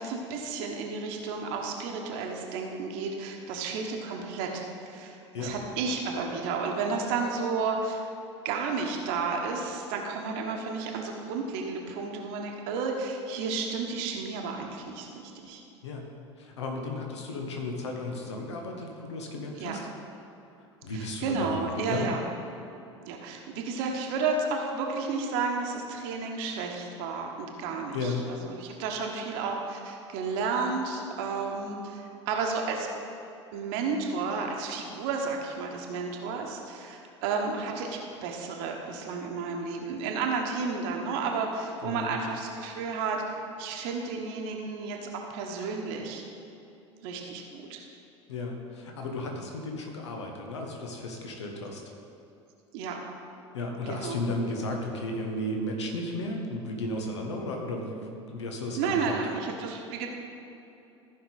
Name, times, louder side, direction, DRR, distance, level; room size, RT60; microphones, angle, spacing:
voice 1, 0.0-8.0 8.4-15.6 19.6-19.8 20.9-22.2 23.0-32.9 33.5-46.2 47.0-47.8 52.7-53.0 53.9-54.2 58.8-60.1, right 4 dB, 55° right, 1 dB, 1.1 m, -32 dB
voice 2, 16.4-19.9 20.8-22.1 27.9-28.3 41.8-42.2 48.3-51.8 53.5-59.2, left 2 dB, 70° left, 1 dB, 1.2 m, -34 dB
14.5 x 5.6 x 4.0 m, 2.8 s
figure-of-eight pair, 70°, 15 cm